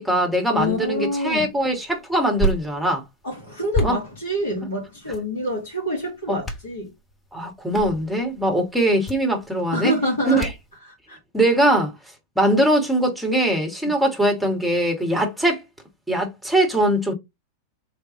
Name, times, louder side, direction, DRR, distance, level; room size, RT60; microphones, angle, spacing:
voice 1, 0.0-3.0 3.8-3.9 6.3-6.4 7.3-9.9 10.3-10.5 11.3-11.9 12.3-15.6 16.1-17.1, right 1 dB, 5° right, 1.6 m, -21 dB
voice 2, 0.5-1.5 3.2-6.9 9.7-10.5 11.1-11.2, left 1 dB, 65° left, 2.8 m, -26 dB
sound 1, 0.6-10.8, equal, 15° left, 1.1 m, -33 dB
4.2 x 3.3 x 3.8 m
figure-of-eight pair, 90°, 0 cm